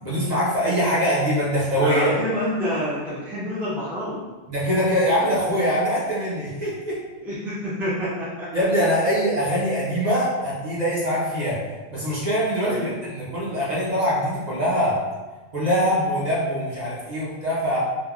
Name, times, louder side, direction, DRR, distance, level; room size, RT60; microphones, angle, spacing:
voice 1, 0.0-2.1 4.5-7.0 8.5-11.6 11.9-15.0 15.5-17.8, equal, 45° right, -8 dB, 0.7 m, -23 dB
voice 2, 1.8-4.2 7.2-8.5 12.6-12.9, equal, ahead, -8 dB, 0.5 m, -27 dB
3.3 x 2.2 x 2.3 m, 1.2 s
omnidirectional pair, 1.1 m